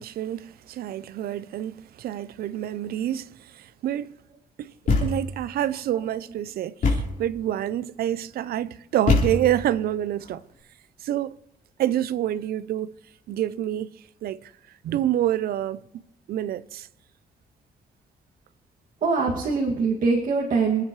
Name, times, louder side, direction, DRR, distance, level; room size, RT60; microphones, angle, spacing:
voice 1, 0.0-4.1 4.6-4.7 5.0-10.4 11.0-11.4 11.8-12.9 13.3-13.9 14.2-14.5 14.8-15.8 16.3-16.9, right 12 dB, 80° right, 0.6 m, -27 dB
Thump thud, 4.9-5.4 6.8-7.3 9.1-9.7, left 3 dB, 60° left, 4.2 m, -23 dB
voice 2, 19.0-20.8, right 4 dB, 60° right, 2.3 m, -23 dB
27.5 x 9.6 x 3.2 m
cardioid pair, 140°, 16 cm